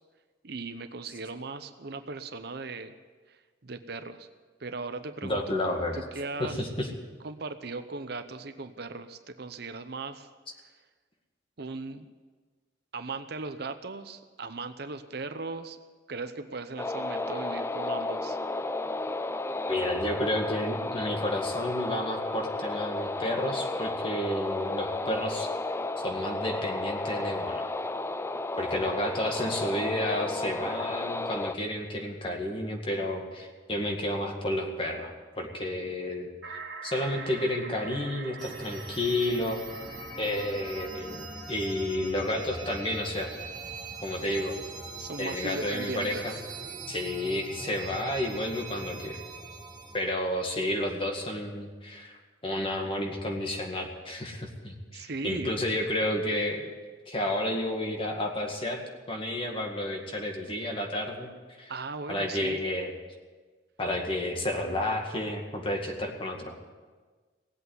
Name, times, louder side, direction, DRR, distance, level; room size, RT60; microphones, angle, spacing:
voice 1, 0.4-2.9 3.6-4.3 4.6-5.6 5.9-6.6 7.2-10.3 11.6-12.1 12.9-15.8 16.1-18.4 45.0-46.2 54.9-55.8 61.7-62.6, right 3 dB, 55° right, 9 dB, 0.8 m, -38 dB
voice 2, 5.2-6.0 6.4-6.9 19.7-25.5 26.0-27.7 28.6-35.1 35.4-39.6 40.2-43.3 44.0-44.6 45.2-46.4 46.9-49.2 49.9-56.7 57.1-61.3 61.6-61.7 62.1-62.9 63.8-66.5, left 1 dB, 30° left, 2 dB, 2.1 m, -31 dB
sound 1, 16.8-31.6, left 2 dB, 15° left, 0.4 m, -33 dB
sound 2, 36.4-42.1, right 5 dB, 75° right, 1.9 m, -45 dB
sound 3, 38.4-50.0, right 2 dB, 20° right, 2.1 m, -41 dB
18.0 x 8.2 x 9.6 m, 1.4 s
head